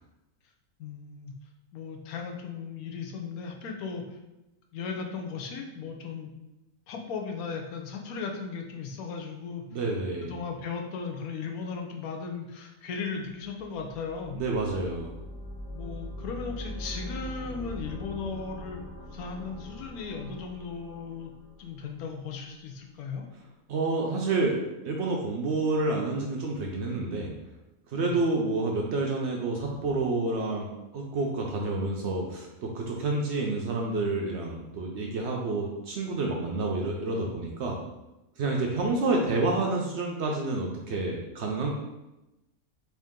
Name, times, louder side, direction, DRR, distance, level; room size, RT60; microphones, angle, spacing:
voice 1, 0.8-1.3 1.7-4.2 4.7-6.3 6.9-9.6 10.2-14.4 15.7-18.8 19.1-21.3 21.6-23.3 28.0-28.2, left 5 dB, 80° left, 3 dB, 1.1 m, -36 dB
voice 2, 9.7-10.3 14.3-15.1 23.7-24.5 24.8-27.3 27.9-32.5 32.7-37.8 38.4-41.7, right 3 dB, 65° right, 0 dB, 0.7 m, -29 dB
sound 1, 13.4-22.2, left 1 dB, 45° left, 0.5 m, -42 dB
3.6 x 2.7 x 3.6 m, 0.97 s
omnidirectional pair, 1.5 m